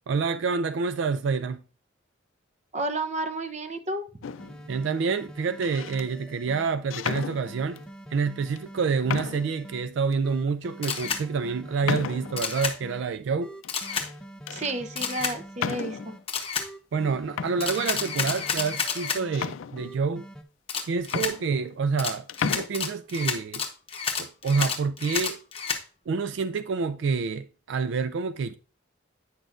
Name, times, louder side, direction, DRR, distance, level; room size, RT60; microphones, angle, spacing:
voice 1, 0.1-1.6 4.7-7.8 8.1-13.5 16.9-20.3 20.9-23.6 24.2-25.4 26.1-28.6, right 5 dB, 70° right, 0.3 m, -28 dB
voice 2, 2.7-4.0 14.5-16.1, right 2 dB, 35° right, 0.7 m, -31 dB
sound 1, 4.2-4.7 5.5-6.1 6.9-7.9 8.6-8.7 9.1-9.6 10.1-10.2 10.8-11.0 11.9-12.5 13.6-14.1 14.5-14.8 15.6-16.2 17.0-17.1 17.4-18.6 19.3-20.2 20.7-20.8 21.1-22.0 22.3-22.7, left 7 dB, 90° left, 0.4 m, -34 dB
sound 2, 4.4-6.7 7.1-9.8 10.2-13.0 13.4-16.2 16.6-19.4 19.8-20.4, right 1 dB, 5° left, 0.5 m, -45 dB
Camera, 10.8-11.2 12.4-12.8 13.7-14.1 15.0-15.4 16.3-16.7 17.6-19.2 20.7-21.3 22.0-25.8, left 6 dB, 30° left, 1.0 m, -30 dB
9.1 x 6.2 x 2.5 m
head